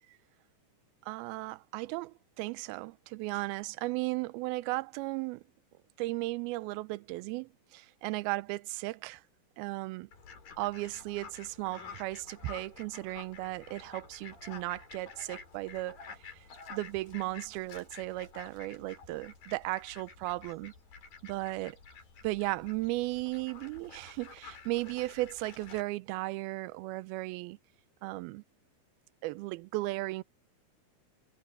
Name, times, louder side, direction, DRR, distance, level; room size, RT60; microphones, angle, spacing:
voice 1, 1.1-5.4 6.0-9.2 9.6-10.1 10.6-16.0 16.3-16.4 16.7-20.7 21.2-21.8 22.2-27.6 28.0-28.4 29.2-30.2, right 20 dB, 80° right, 2.4 m, -36 dB
Fowl, 10.1-25.8, left 5 dB, 60° left, 6.9 m, -50 dB
omnidirectional pair, 4.7 m